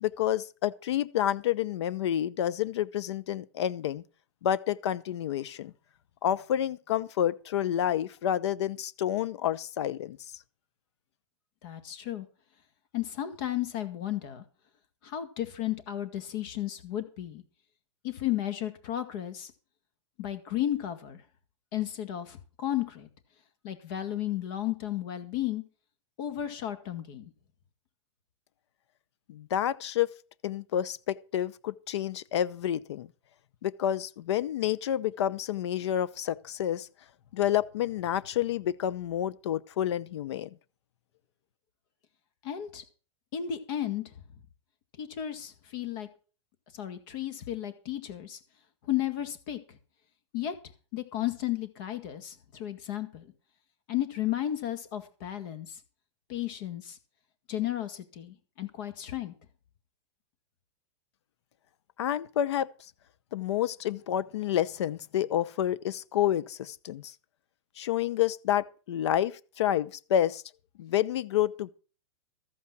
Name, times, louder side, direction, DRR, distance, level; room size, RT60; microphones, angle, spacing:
voice 1, 0.0-4.0 4.4-5.7 6.2-10.2 29.3-30.1 30.4-33.1 33.6-36.9 37.3-40.5 62.0-62.7 63.3-67.1 67.8-70.4 70.8-71.7, left 11 dB, 65° left, 0.8 m, -29 dB
voice 2, 11.6-12.3 12.9-14.4 15.0-17.4 18.0-19.5 20.2-21.2 21.7-23.1 23.6-25.6 26.2-27.3 42.4-42.8 43.3-44.1 45.0-46.1 46.7-48.4 48.8-49.8 50.3-50.5 50.9-53.3 53.9-55.8 56.3-57.0 57.5-59.3, left 12 dB, 40° left, 1.9 m, -33 dB
13.5 x 8.5 x 6.1 m
supercardioid pair, 170°, 15 cm